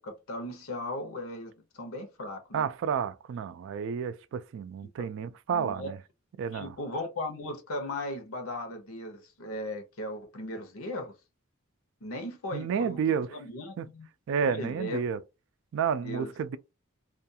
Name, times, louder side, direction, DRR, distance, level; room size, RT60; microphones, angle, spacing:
voice 1, 0.0-2.7 5.5-5.9 6.5-11.1 12.0-13.0 13.3-14.1 14.4-15.0 16.0-16.3, left 1 dB, 90° left, 0.8 m, -37 dB
voice 2, 2.5-6.0 6.4-6.7 12.5-13.3 13.8-13.9 14.3-15.2 15.7-16.6, right 7 dB, 65° right, 0.3 m, -30 dB
2.4 x 2.3 x 2.7 m
head